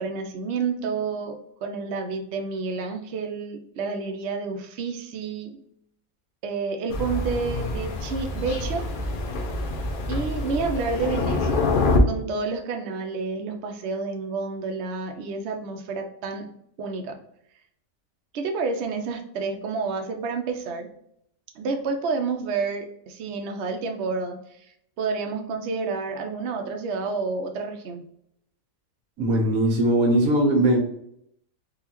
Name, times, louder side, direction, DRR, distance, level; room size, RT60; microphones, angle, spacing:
voice 1, 0.0-5.5 6.4-8.9 10.1-11.7 12.1-16.5 16.8-17.1 18.3-20.9 21.6-24.7 25.0-28.0, right 4 dB, 65° right, 3 dB, 0.8 m, -29 dB
Thunder, 6.9-12.0, left 3 dB, 60° left, 0.5 m, -26 dB
voice 2, 29.2-30.8, right 1 dB, 90° right, 0 dB, 1.4 m, -20 dB
3.7 x 2.3 x 2.9 m, 0.72 s
omnidirectional pair, 1.4 m